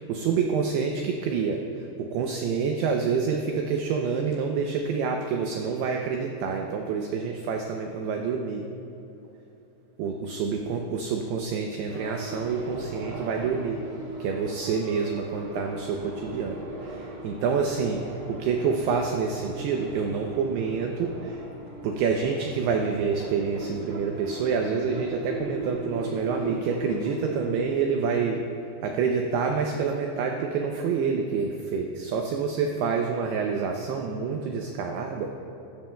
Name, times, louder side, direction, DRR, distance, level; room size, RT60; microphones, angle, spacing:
voice 1, 0.0-8.6 10.0-13.8 14.2-18.0 18.3-21.4 21.8-28.4 28.8-35.3, right 5 dB, 85° right, 2 dB, 2.3 m, -27 dB
sound 1, 11.9-27.8, right 1 dB, 40° right, 1.7 m, -39 dB
15.5 x 13.0 x 2.3 m, 2.9 s
omnidirectional pair, 5.4 m